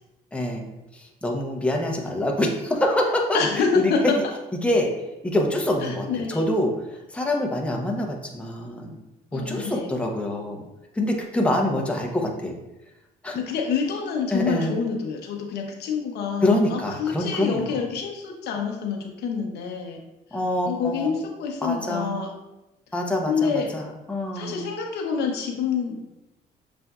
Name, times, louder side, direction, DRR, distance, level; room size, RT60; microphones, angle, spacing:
voice 1, 0.3-0.6 0.9-3.9 4.6-4.9 5.2-9.0 9.3-10.6 10.9-12.5 13.2-13.4 14.3-14.8 16.4-17.7 20.3-21.1 21.6-22.1 22.9-24.7, left 1 dB, 5° left, 0 dB, 0.7 m, -25 dB
voice 2, 3.3-4.2 5.8-6.5 9.3-9.9 13.3-20.0 20.7-22.3 23.3-23.7 24.3-26.0, left 5 dB, 75° left, 2 dB, 0.8 m, -27 dB
6.9 x 2.5 x 2.3 m, 0.96 s
cardioid pair, 90°, 17 cm